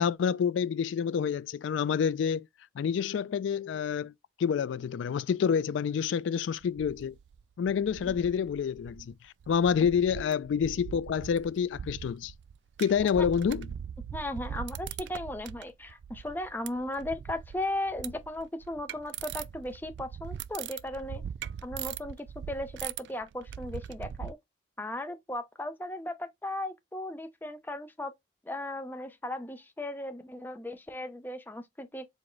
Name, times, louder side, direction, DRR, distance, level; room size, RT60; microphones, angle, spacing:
voice 1, 0.0-2.5 2.8-4.1 4.4-7.2 7.6-12.3 12.8-13.7, left 7 dB, 80° left, 0.3 m, -28 dB
sound 1, 6.6-7.4 7.7-9.2 9.4-24.3, right 8 dB, 70° right, 0.3 m, -41 dB
voice 2, 14.1-21.2 21.6-24.4 24.8-28.1 28.5-32.1, left 1 dB, 10° left, 0.5 m, -36 dB
4.7 x 2.1 x 3.8 m
head